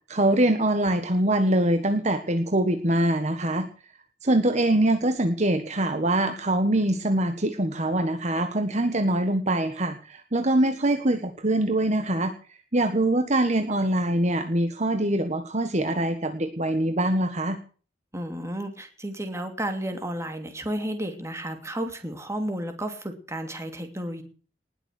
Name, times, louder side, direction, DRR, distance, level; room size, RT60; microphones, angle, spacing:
voice 1, 0.1-3.7 4.2-12.3 12.7-17.6, right 1 dB, 40° right, 7 dB, 1.5 m, -23 dB
voice 2, 18.1-24.2, right 1 dB, 15° right, 6 dB, 2.8 m, -32 dB
19.5 x 7.4 x 8.2 m, 0.40 s
head